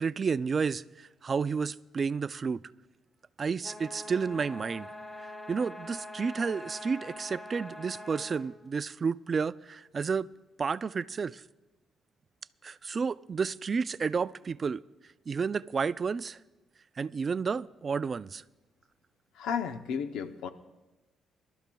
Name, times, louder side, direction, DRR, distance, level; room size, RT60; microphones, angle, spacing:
voice 1, 0.0-2.7 3.4-4.9 5.5-10.3 10.6-11.4 12.6-14.8 15.3-16.4 17.0-18.4, right 5 dB, 40° right, 0.3 m, -31 dB
sound 1, 3.6-8.5, left 1 dB, 25° left, 2.4 m, -44 dB
voice 2, 19.4-20.5, left 7 dB, 90° left, 0.7 m, -33 dB
22.5 x 12.5 x 2.3 m
cardioid pair, 90°, 0 cm